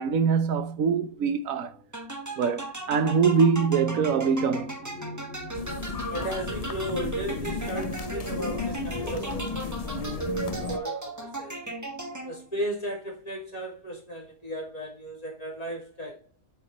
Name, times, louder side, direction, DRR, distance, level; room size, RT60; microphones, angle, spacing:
voice 1, 0.0-1.7 2.4-4.8, right 6 dB, 85° right, 1.2 m, -23 dB
sound 1, 1.5-10.4 11.3-11.5 11.8-12.4, left 1 dB, 80° left, 2.8 m, -46 dB
sound 2, 1.9-12.6, right 2 dB, 15° right, 1.2 m, -36 dB
sound 3, 5.5-10.8, left 4 dB, 45° left, 0.5 m, -34 dB
voice 2, 6.1-11.6 12.2-16.2, equal, 30° left, 3.4 m, -36 dB
8.3 x 4.9 x 4.1 m
omnidirectional pair, 1.4 m